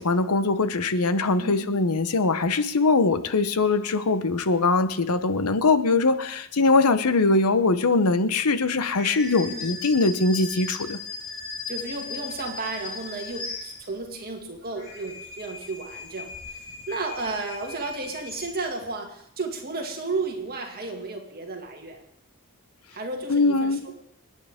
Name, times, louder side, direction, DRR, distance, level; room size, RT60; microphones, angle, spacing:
voice 1, 0.0-11.0 23.3-23.8, left 3 dB, 85° left, 12 dB, 0.9 m, -22 dB
sound 1, 8.9-14.1 14.6-18.9, left 4 dB, 60° left, 5.6 m, -38 dB
voice 2, 11.7-16.6 16.9-22.0 22.9-23.9, right 3 dB, 45° right, 2 dB, 2.1 m, -33 dB
28.0 x 9.4 x 3.6 m, 0.73 s
head